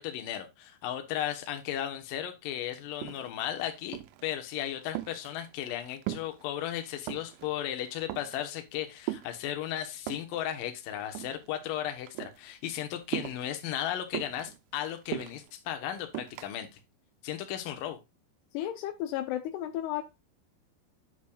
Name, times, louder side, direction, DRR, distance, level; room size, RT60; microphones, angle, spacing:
voice 1, 0.0-16.8 17.2-18.0, left 11 dB, 70° left, 7 dB, 2.2 m, -35 dB
sound 1, 2.5-2.6 2.9-3.5 3.9-4.3 4.7-6.4 6.7-7.5 7.9-8.5 9.1-10.4 11.0-11.8 12.1-12.4 13.1-13.6 14.1-15.5 16.1-16.5, right 15 dB, 90° right, 3.0 m, -39 dB
voice 2, 18.5-20.0, left 12 dB, 90° left, 8 dB, 2.3 m, -33 dB
8.7 x 7.2 x 2.3 m, 0.23 s
omnidirectional pair, 5.4 m